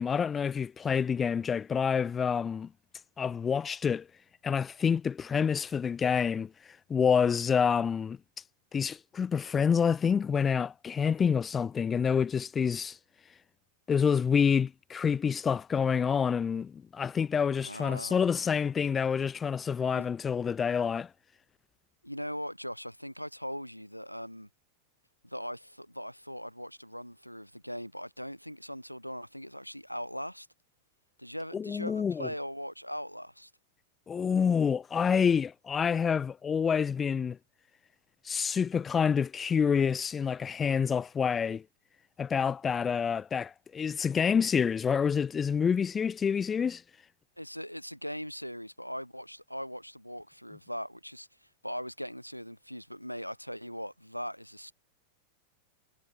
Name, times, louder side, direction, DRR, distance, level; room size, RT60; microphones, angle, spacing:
voice 1, 0.0-2.7 3.2-4.0 4.4-6.5 6.9-8.2 8.7-13.0 13.9-21.1 31.5-32.3 34.1-37.4 38.2-41.6 42.2-46.8, left 6 dB, 20° left, 1.3 m, -27 dB
voice 2, 17.6-18.2 19.9-20.1 22.0-24.5 25.2-30.5 31.2-33.5 47.4-51.3 51.6-54.7, equal, 90° left, 5.3 m, -40 dB
figure-of-eight pair, 90°, 0 cm